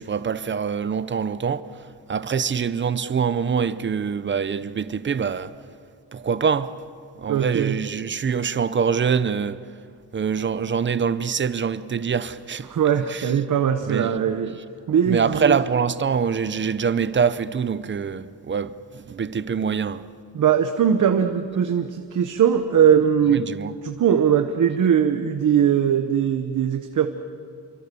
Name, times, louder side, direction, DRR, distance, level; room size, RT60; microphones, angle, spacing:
voice 1, 0.0-1.6 2.1-5.5 6.1-6.7 7.2-9.6 10.1-12.7 13.1-13.3 13.9-14.2 15.1-20.0 23.4-23.7, right 6 dB, 30° right, 0.6 m, -24 dB
voice 2, 7.3-7.8 12.7-14.6 14.9-15.6 20.3-23.5 23.8-27.1, right 8 dB, 50° right, 1.0 m, -20 dB
28.0 x 24.5 x 6.9 m
wide cardioid pair, 175°, 40 cm